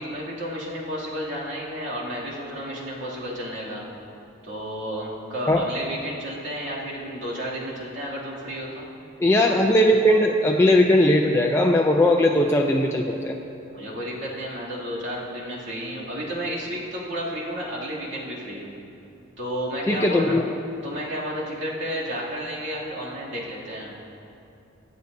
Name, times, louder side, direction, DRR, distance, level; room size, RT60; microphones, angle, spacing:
voice 1, 0.0-3.9 4.4-8.9 13.7-18.7 19.4-20.4 20.8-24.0, equal, 60° right, -6 dB, 2.6 m, -32 dB
voice 2, 9.2-13.4 19.9-20.4, left 1 dB, 15° left, 0 dB, 0.4 m, -19 dB
23.5 x 8.1 x 2.7 m, 2.7 s
head